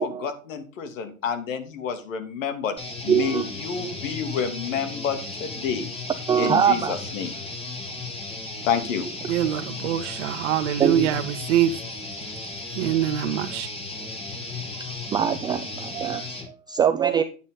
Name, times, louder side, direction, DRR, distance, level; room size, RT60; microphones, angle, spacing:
voice 1, 0.0-2.7 3.0-5.9 6.4-7.4 8.6-9.1, left 7 dB, 65° left, 3.0 m, -29 dB
sound 1, 2.8-16.5, left 3 dB, 15° left, 2.8 m, -35 dB
voice 2, 3.1-3.4 6.3-7.0 10.8-11.1 15.1-17.2, right 8 dB, 10° right, 0.4 m, -23 dB
voice 3, 9.3-11.8 12.7-13.7, right 11 dB, 60° right, 1.4 m, -24 dB
10.0 x 8.3 x 4.0 m
hypercardioid pair, 125°, 41 cm